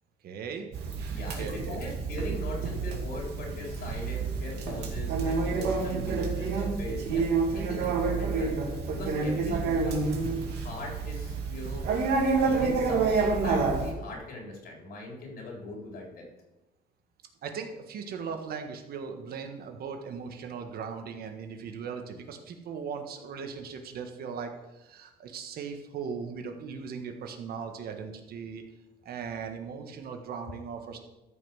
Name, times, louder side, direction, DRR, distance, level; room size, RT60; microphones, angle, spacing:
voice 1, 0.2-0.7 1.2-1.9 17.4-28.6 29.0-31.0, right 6 dB, 65° right, 5 dB, 1.5 m, -38 dB
Conversation, 0.7-13.9, right 4 dB, 80° right, 2.3 m, -29 dB
voice 2, 1.1-8.6 8.9-10.1 10.5-12.1 12.4-16.2, left 2 dB, 65° left, -1 dB, 4.0 m, -40 dB
13.0 x 5.6 x 6.3 m, 1.0 s
cardioid pair, 110°, 17 cm